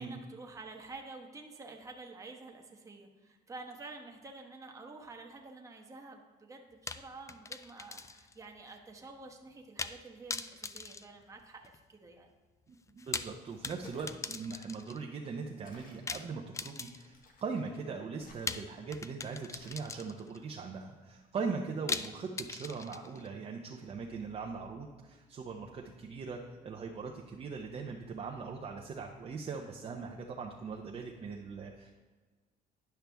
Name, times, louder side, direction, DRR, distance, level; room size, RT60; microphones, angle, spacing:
voice 1, 0.0-12.3, right 3 dB, 20° right, 1 dB, 1.0 m, -49 dB
sound 1, 6.9-8.4 8.7-8.8 9.8-10.0 10.3-11.8 12.9-15.0 16.1-17.3 18.5-20.4 21.9-23.3, left 4 dB, 20° left, 0.3 m, -40 dB
voice 2, 12.7-31.9, right 4 dB, 35° right, 1 dB, 0.7 m, -40 dB
sound 2, 13.8-14.2 15.6-16.1 17.1-17.6 18.2-18.9 19.5-19.9, left 2 dB, 55° left, 1.2 m, -56 dB
10.5 x 5.7 x 3.4 m, 1.4 s
cardioid pair, 110°, 17 cm